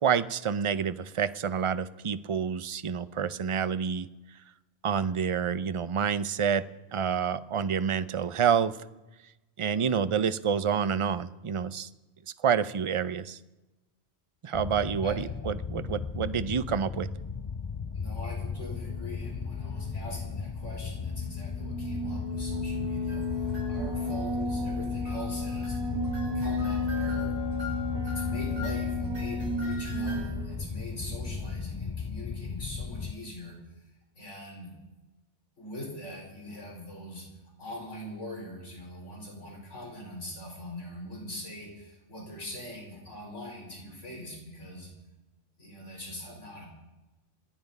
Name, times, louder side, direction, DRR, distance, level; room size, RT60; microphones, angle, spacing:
voice 1, 0.0-4.1 4.8-6.6 6.9-8.7 9.6-11.9 12.4-13.4 14.4-17.1, right 7 dB, 40° right, 14 dB, 0.4 m, -28 dB
sound 1, 14.5-33.1, left 5 dB, 40° left, 0.4 m, -36 dB
voice 2, 15.0-15.4 17.9-26.0 26.3-27.3 28.0-33.5 34.2-34.7 35.6-37.2 37.6-44.9 45.6-46.7, left 1 dB, 80° left, -1 dB, 4.9 m, -42 dB
sound 2, 18.7-31.5, left 2 dB, 20° right, 1.7 m, -33 dB
sound 3, 23.1-24.1 25.0-30.3, left 3 dB, 70° right, 8.2 m, -45 dB
27.0 x 9.5 x 5.4 m, 1.0 s
omnidirectional pair, 1.2 m